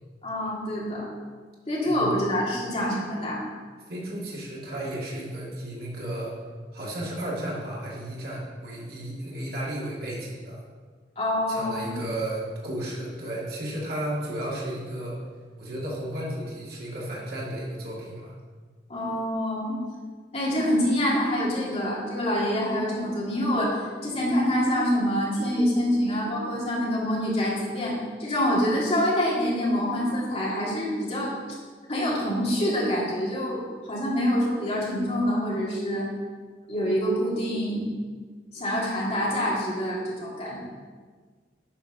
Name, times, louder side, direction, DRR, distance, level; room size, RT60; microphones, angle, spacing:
voice 1, 0.2-1.0 1.7-3.4 11.2-11.9 18.9-19.8 20.3-23.7 24.0-31.3 31.9-33.6 33.9-36.1 36.7-37.8 38.5-40.6, equal, 35° left, -5 dB, 2.6 m, -26 dB
voice 2, 1.9-2.2 3.9-6.3 6.7-10.6 11.5-15.2 15.6-18.3, right 1 dB, 60° right, -5 dB, 2.3 m, -33 dB
8.8 x 4.8 x 6.1 m, 1.5 s
head